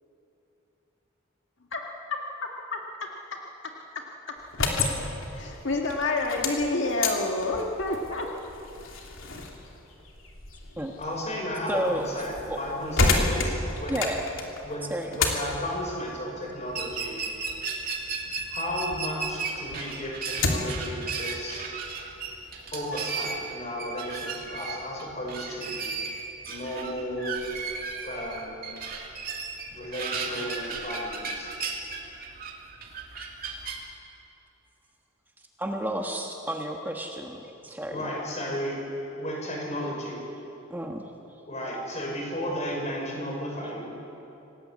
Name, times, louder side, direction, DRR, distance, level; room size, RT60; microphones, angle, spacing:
sound 1, 4.4-19.1 19.5-20.9, left 3 dB, 80° left, 3.0 m, -31 dB
voice 1, 5.3-8.3, left 2 dB, 65° left, 1 dB, 1.9 m, -28 dB
voice 2, 11.0-14.0 14.6-17.3 18.5-21.7 22.7-25.9 26.5-27.4 28.0-28.7 29.7-31.5 37.9-38.9 39.2-40.2 41.5-43.9, equal, 35° left, -1 dB, 6.0 m, -34 dB
voice 3, 11.7-12.1 12.5-12.6 13.9-14.2 14.9-15.1 35.6-38.1 40.7-41.0, right 1 dB, 10° right, 2 dB, 1.4 m, -31 dB
sound 2, 16.7-33.8, right 4 dB, 45° right, 2.8 m, -35 dB
27.5 x 19.0 x 8.5 m, 3.0 s
head